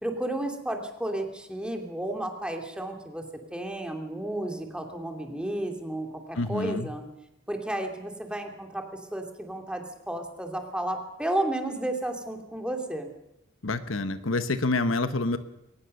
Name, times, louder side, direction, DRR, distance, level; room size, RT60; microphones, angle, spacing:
voice 1, 0.0-3.2 3.5-7.0 7.5-8.9 9.1-13.1, right 1 dB, 5° right, 3 dB, 2.6 m, -32 dB
voice 2, 6.3-6.9 13.6-15.4, left 2 dB, 75° left, 11 dB, 1.2 m, -27 dB
22.0 x 19.0 x 6.6 m, 0.87 s
head